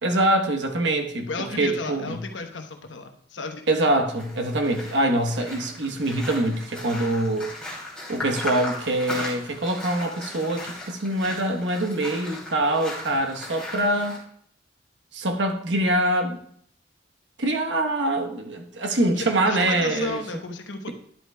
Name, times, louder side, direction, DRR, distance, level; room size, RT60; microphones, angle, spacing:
voice 1, 0.0-2.2 3.7-7.5 8.1-14.2 15.1-16.4 17.4-20.2, right 1 dB, 75° right, 4 dB, 1.0 m, -24 dB
voice 2, 1.3-3.6 19.0-20.9, left 3 dB, 85° left, 5 dB, 0.9 m, -34 dB
sound 1, 4.1-14.2, left 1 dB, 5° left, 2.6 m, -37 dB
10.5 x 8.1 x 2.2 m, 0.65 s
head